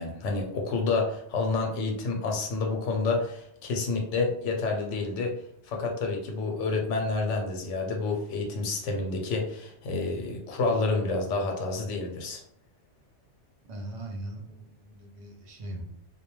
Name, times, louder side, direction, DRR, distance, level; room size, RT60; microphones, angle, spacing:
voice 1, 0.0-5.3 5.7-12.4, left 3 dB, 85° left, 2 dB, 0.9 m, -29 dB
voice 2, 13.6-15.8, right 1 dB, 50° right, 0 dB, 0.5 m, -40 dB
2.2 x 2.1 x 3.0 m, 0.72 s
omnidirectional pair, 1.2 m